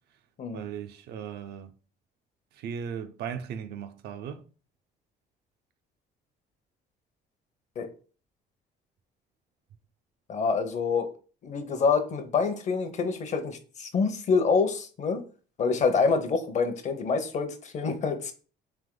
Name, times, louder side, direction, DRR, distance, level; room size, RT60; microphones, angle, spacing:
voice 1, 0.5-1.7 2.6-4.4, right 8 dB, 75° right, 0.5 m, -37 dB
voice 2, 10.3-11.1 11.4-15.2 15.6-18.3, left 5 dB, 45° left, 0.7 m, -26 dB
3.5 x 2.9 x 3.7 m
cardioid pair, 110°, 17 cm